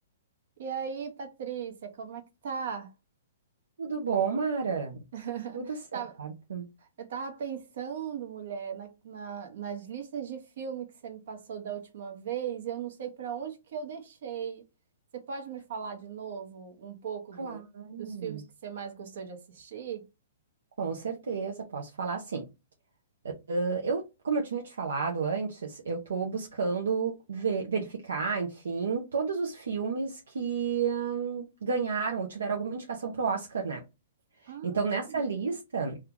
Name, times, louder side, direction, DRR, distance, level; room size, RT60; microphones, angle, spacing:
voice 1, 0.6-2.9 5.1-6.1 7.0-14.6 15.1-17.6 18.0-20.0 34.5-35.2, right 7 dB, 65° right, 1.1 m, -38 dB
voice 2, 3.8-5.0 5.5-5.7 5.9-6.7 17.4-18.4 20.8-22.4 23.5-33.8 34.6-36.0, right 5 dB, 80° right, 0.7 m, -31 dB
2.7 x 2.4 x 3.7 m
hypercardioid pair, 130°, 0 cm